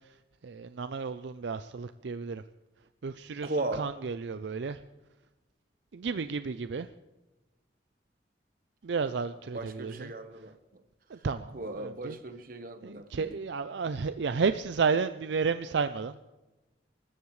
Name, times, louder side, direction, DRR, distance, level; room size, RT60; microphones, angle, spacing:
voice 1, 0.4-2.4 3.0-4.8 5.9-6.9 8.8-10.1 11.1-12.2 12.8-16.1, right 5 dB, 75° right, 11 dB, 0.5 m, -32 dB
voice 2, 3.4-3.8 9.5-10.5 11.5-13.4, right 2 dB, 50° right, 8 dB, 1.2 m, -36 dB
26.0 x 14.0 x 3.2 m, 1.1 s
head